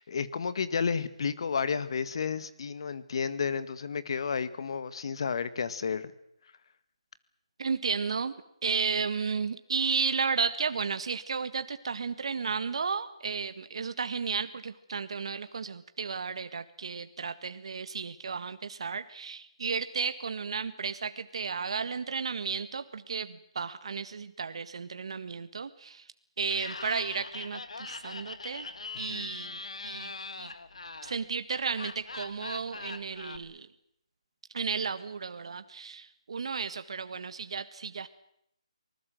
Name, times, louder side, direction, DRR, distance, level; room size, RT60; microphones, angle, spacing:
voice 1, 0.0-6.1 29.1-29.3, left 6 dB, 55° left, 14 dB, 1.8 m, -32 dB
voice 2, 7.6-8.3 8.6-26.1 26.4-28.7 29.0-30.5 31.0-33.7 34.5-38.1, right 5 dB, 60° right, 11 dB, 1.7 m, -33 dB
Laughter, 26.4-33.4, left 3 dB, 85° left, 2.0 m, -42 dB
25.0 x 20.5 x 7.8 m, 0.75 s
hypercardioid pair, 160°, 3 cm